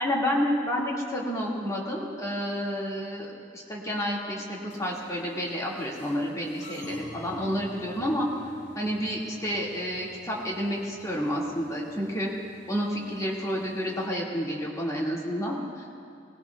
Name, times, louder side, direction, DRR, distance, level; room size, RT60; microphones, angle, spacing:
voice 1, 0.0-8.3 8.7-12.3 12.7-15.8, equal, 20° left, -4 dB, 2.1 m, -30 dB
sound 1, 4.7-14.1, equal, 65° left, 1.8 m, -50 dB
19.5 x 16.5 x 2.3 m, 2.3 s
head